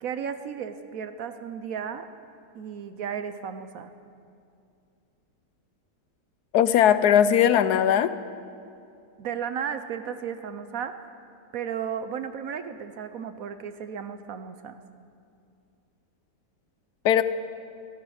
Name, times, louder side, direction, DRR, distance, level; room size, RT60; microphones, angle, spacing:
voice 1, 0.0-2.1 2.5-3.9 9.2-11.0 11.5-14.8, right 7 dB, 65° right, 10 dB, 1.0 m, -34 dB
voice 2, 6.5-8.1 17.0-17.2, left 9 dB, 75° left, 13 dB, 1.1 m, -19 dB
15.5 x 14.0 x 6.4 m, 2.5 s
omnidirectional pair, 1.8 m